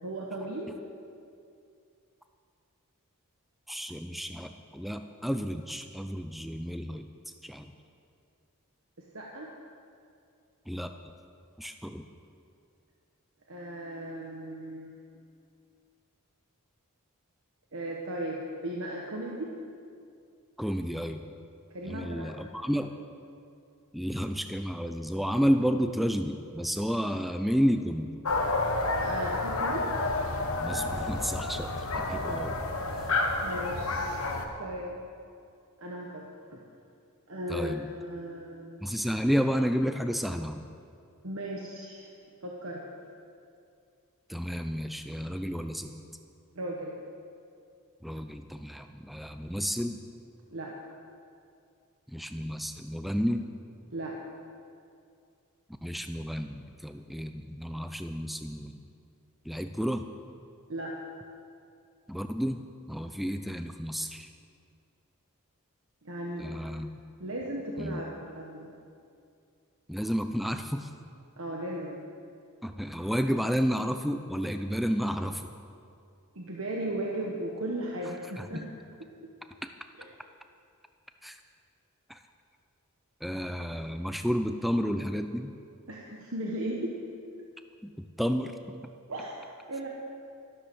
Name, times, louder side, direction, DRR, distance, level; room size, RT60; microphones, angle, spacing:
voice 1, 0.0-0.7 9.0-9.5 13.5-14.9 17.7-19.5 21.7-22.5 29.0-29.9 33.4-35.0 35.8-36.6 37.3-38.8 41.2-42.1 42.4-42.8 46.5-47.0 50.5-50.8 53.9-54.2 60.7-61.0 66.0-66.5 67.2-68.7 71.4-72.0 76.3-78.6 80.0-80.1 85.9-87.0 89.1-89.4 89.7-89.9, right 1 dB, 65° right, -1 dB, 1.3 m, -36 dB
voice 2, 3.7-7.1 7.4-7.7 10.7-10.9 11.6-12.1 20.6-21.2 21.9-22.9 23.9-28.1 30.6-31.7 32.0-32.6 37.5-37.9 38.8-40.6 44.3-45.9 48.0-50.0 52.1-53.5 55.8-58.8 59.5-60.1 62.1-62.6 62.9-64.3 66.4-66.9 67.8-68.0 69.9-70.9 72.6-75.5 78.4-78.6 81.2-81.4 82.1-82.2 83.2-85.5 87.8-88.8, equal, ahead, 7 dB, 0.4 m, -31 dB
sound 1, 28.2-34.5, left 2 dB, 70° left, 1.3 m, -30 dB
13.0 x 12.0 x 6.2 m, 2.4 s
head